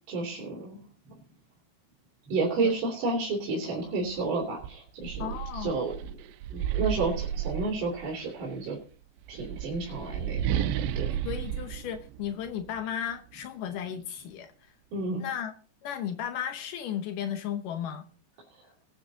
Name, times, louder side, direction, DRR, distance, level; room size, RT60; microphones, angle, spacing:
voice 1, 0.1-0.8 2.3-5.3 5.5-8.8 9.3-11.2 14.9-15.2 18.5-18.6, right 3 dB, 50° right, -3 dB, 4.4 m, -31 dB
sound 1, 4.1-4.2 4.6-8.3 9.2-12.8, right 10 dB, 85° right, 2.9 m, -33 dB
voice 2, 5.2-5.8 11.2-14.7 15.2-15.5 15.8-18.0, left 9 dB, 85° left, 7 dB, 1.8 m, -35 dB
20.5 x 9.2 x 2.8 m, 0.41 s
omnidirectional pair, 5.2 m